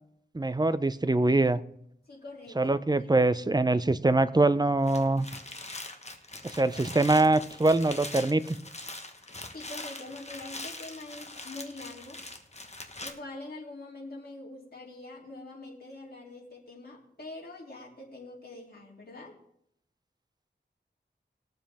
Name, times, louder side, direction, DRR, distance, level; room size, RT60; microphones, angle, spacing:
voice 1, 0.3-1.6 2.6-5.3 6.4-8.6, right 2 dB, 20° right, 13 dB, 0.5 m, -24 dB
voice 2, 2.1-3.2 9.5-12.2 13.0-19.3, left 2 dB, 55° left, -3 dB, 2.9 m, -44 dB
sound 1, 4.7-13.1, left 2 dB, 35° left, 1.3 m, -42 dB
20.0 x 7.3 x 3.5 m, 0.73 s
wide cardioid pair, 70°, 19 cm